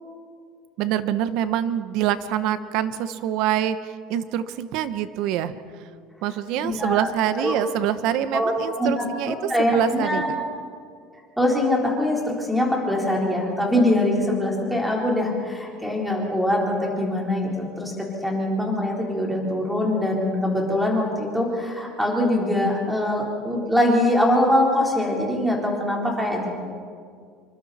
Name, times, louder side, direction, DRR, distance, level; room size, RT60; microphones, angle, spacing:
voice 1, 0.8-5.5 6.2-10.2, right 11 dB, 60° right, 12 dB, 1.1 m, -25 dB
voice 2, 6.6-7.1 7.4-7.6 8.3-10.4 11.4-26.5, left 1 dB, ahead, -2 dB, 4.0 m, -23 dB
27.0 x 24.5 x 4.3 m, 2.2 s
cardioid pair, 155°, 0 cm